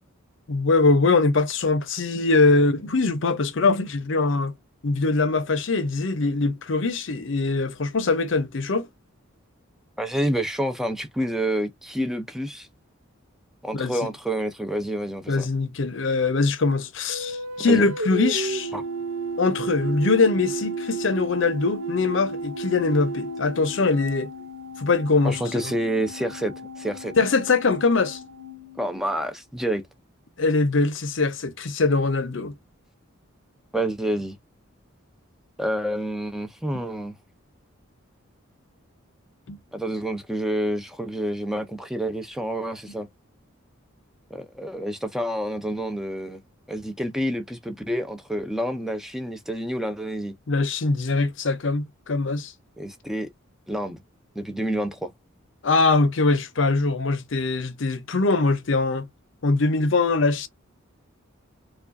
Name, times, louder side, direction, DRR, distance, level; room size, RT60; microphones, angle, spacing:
voice 1, 0.5-4.5 4.8-8.9 13.7-13.9 15.3-18.7 19.4-24.3 24.8-25.7 27.2-28.2 30.4-32.5 39.5-39.6 50.5-52.5 55.6-59.1 59.4-60.5, left 3 dB, 60° left, 0.6 m, -22 dB
voice 2, 10.0-12.7 13.6-15.4 17.7-17.9 18.7-18.8 25.2-27.1 28.8-29.8 33.7-34.4 35.6-37.2 39.7-43.1 44.3-46.4 46.7-50.3 52.8-53.3 53.7-54.0 54.4-55.1, right 1 dB, ahead, 0.5 m, -28 dB
sound 1, 17.1-24.4, right 3 dB, 70° right, 0.7 m, -32 dB
Organ, 18.1-29.4, left 4 dB, 85° right, 1.0 m, -41 dB
4.7 x 2.3 x 2.5 m
head